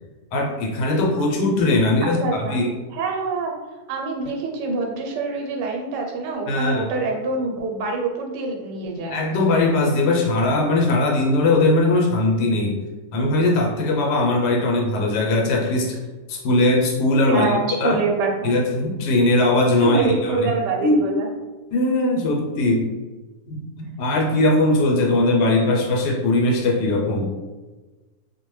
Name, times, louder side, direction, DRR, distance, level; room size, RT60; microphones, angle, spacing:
voice 1, 0.3-2.7 6.5-6.9 9.1-12.8 13.1-16.0 16.3-18.0 18.4-20.5 20.8-21.0 21.7-22.9 23.5-27.3, left 2 dB, 85° left, 1 dB, 1.2 m, -20 dB
voice 2, 2.0-2.6 2.9-3.5 3.9-9.2 17.3-18.5 19.8-21.3, right 3 dB, 85° right, 1 dB, 1.2 m, -25 dB
2.7 x 2.1 x 3.0 m, 1.2 s
omnidirectional pair, 1.8 m